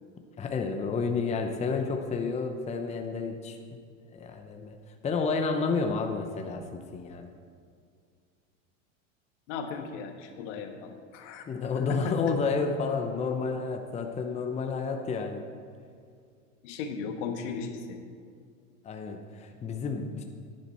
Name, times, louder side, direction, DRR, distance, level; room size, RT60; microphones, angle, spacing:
voice 1, 0.4-3.8 4.1-4.7 5.0-7.3 11.5-15.4 18.8-20.2, left 4 dB, 15° left, 4 dB, 0.8 m, -30 dB
voice 2, 9.5-11.4 11.8-12.2 16.6-18.0, left 5 dB, 70° left, 5 dB, 1.5 m, -36 dB
10.5 x 10.5 x 4.4 m, 2.2 s
supercardioid pair, 125°, 38 cm